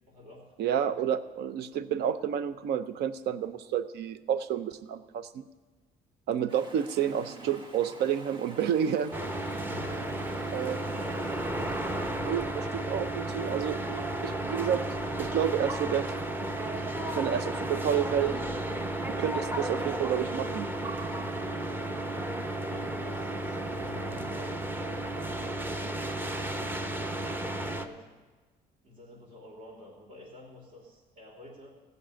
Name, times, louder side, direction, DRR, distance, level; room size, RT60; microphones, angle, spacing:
voice 1, 0.1-0.5 9.5-10.3 10.8-11.4 21.3-22.1 22.6-25.1 26.0-28.0 28.8-31.7, left 1 dB, 55° right, -2 dB, 3.0 m, -50 dB
voice 2, 0.6-5.4 6.3-9.1 10.5-10.8 12.0-14.8 15.2-16.1 16.8-18.4 19.2-20.7, right 9 dB, 75° right, 13 dB, 0.7 m, -30 dB
Stream, 6.5-12.2, right 2 dB, 30° right, 1.4 m, -48 dB
sound 1, 9.1-27.9, right 1 dB, 10° right, 0.8 m, -33 dB
15.5 x 5.5 x 8.8 m, 1.3 s
cardioid pair, 110°, 17 cm